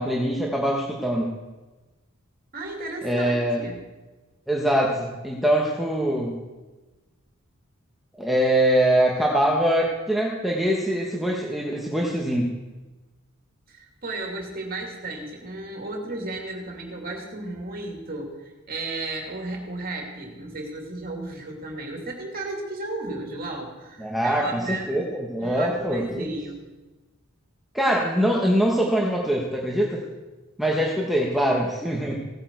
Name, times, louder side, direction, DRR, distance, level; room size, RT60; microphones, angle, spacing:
voice 1, 0.0-1.4 3.0-3.6 4.5-6.4 8.2-12.5 24.0-26.3 27.7-30.0 30.6-32.2, right 1 dB, ahead, -3 dB, 1.2 m, -23 dB
voice 2, 2.5-3.8 13.7-25.0 25.4-26.6, right 2 dB, 45° right, 1 dB, 2.5 m, -34 dB
17.0 x 8.7 x 4.6 m, 1.2 s
head